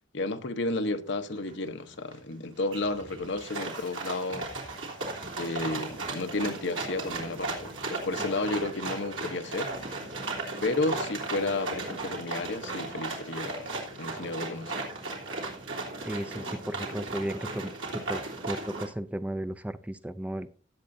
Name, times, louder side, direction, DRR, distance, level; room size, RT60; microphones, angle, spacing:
voice 1, 0.1-4.5 5.4-10.1 10.6-13.7 14.0-14.9, left 2 dB, 65° left, 1.0 m, -32 dB
sound 1, 1.5-1.6 1.9-2.3 2.7-18.9, right 3 dB, 75° right, 3.3 m, -36 dB
voice 2, 16.0-17.7 18.1-18.2 18.5-20.5, right 1 dB, 5° right, 0.4 m, -34 dB
18.5 x 7.7 x 2.7 m
head